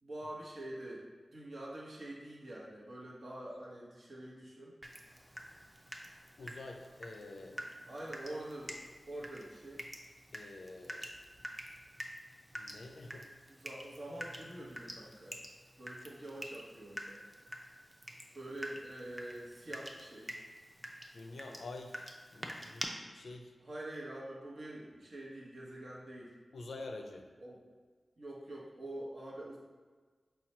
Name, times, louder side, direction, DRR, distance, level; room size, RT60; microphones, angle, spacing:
voice 1, 0.0-4.7 7.9-8.7 9.0-9.8 13.5-15.4 15.8-17.2 18.3-20.4 23.6-26.3 27.4-27.6 28.2-29.6, right 1 dB, 65° right, -4 dB, 1.0 m, -46 dB
Water tap faucet / Drip, 4.8-22.9, equal, 15° right, 0.5 m, -48 dB
voice 2, 6.4-7.6 10.3-11.1 12.5-13.3 21.1-22.0 22.3-23.5 26.5-27.3, left 2 dB, 85° left, 3 dB, 0.4 m, -47 dB
4.2 x 2.3 x 4.2 m, 1.4 s
cardioid pair, 45°, 0 cm